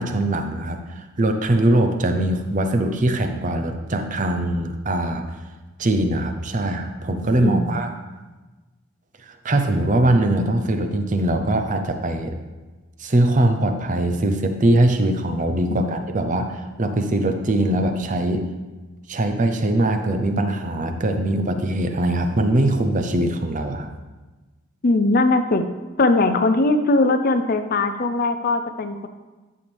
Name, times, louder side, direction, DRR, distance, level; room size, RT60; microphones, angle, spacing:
voice 1, 0.0-5.3 5.8-7.9 9.2-12.4 13.0-18.5 19.1-23.9, right 1 dB, 35° right, 6 dB, 0.6 m, -21 dB
voice 2, 7.4-7.8 15.7-16.0 24.8-25.6 26.0-29.1, left 2 dB, 40° left, 9 dB, 0.5 m, -20 dB
11.0 x 7.0 x 3.4 m, 1.2 s
head